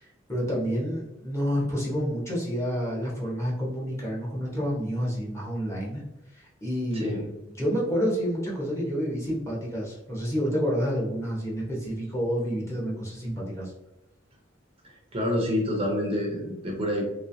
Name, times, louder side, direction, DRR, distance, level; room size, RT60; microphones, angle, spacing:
voice 1, 0.0-6.0 6.3-7.1 7.5-13.7, equal, 15° left, -4 dB, 1.0 m, -29 dB
voice 2, 14.8-17.0, left 1 dB, 30° right, -2 dB, 0.7 m, -28 dB
3.1 x 3.1 x 2.6 m, 0.94 s
head